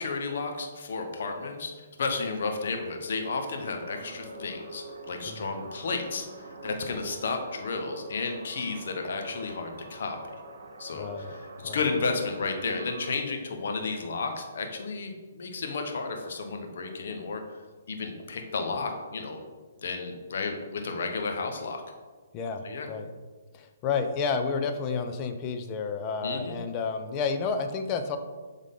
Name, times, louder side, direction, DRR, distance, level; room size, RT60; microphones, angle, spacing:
voice 1, 0.0-6.3 6.6-10.2 10.8-17.4 17.9-19.4 19.8-21.8 22.6-22.9 26.2-26.5, left 4 dB, 65° left, 4 dB, 1.0 m, -32 dB
sound 1, 3.4-13.2, right 2 dB, 65° right, 0.9 m, -45 dB
voice 2, 10.9-11.3 11.6-11.8 22.3-23.1 23.5-28.2, left 5 dB, 30° left, 7 dB, 0.6 m, -31 dB
7.3 x 3.7 x 3.7 m, 1.4 s
hypercardioid pair, 135°, 0 cm